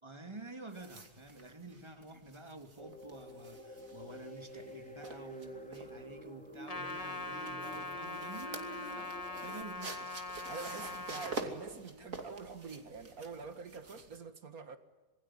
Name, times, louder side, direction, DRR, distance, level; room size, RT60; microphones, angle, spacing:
voice 1, 0.0-11.0 11.3-12.3, right 2 dB, 20° right, 6 dB, 2.6 m, -50 dB
sound 1, 0.7-14.2, right 3 dB, 70° right, 3.2 m, -48 dB
sound 2, 2.8-9.6, equal, 5° left, 2.7 m, -50 dB
Trumpet, 6.7-11.4, left 2 dB, 25° left, 1.6 m, -42 dB
voice 2, 10.5-14.8, right 5 dB, 90° right, 9 dB, 2.3 m, -46 dB
27.0 x 22.0 x 10.0 m, 1.2 s
omnidirectional pair, 1.5 m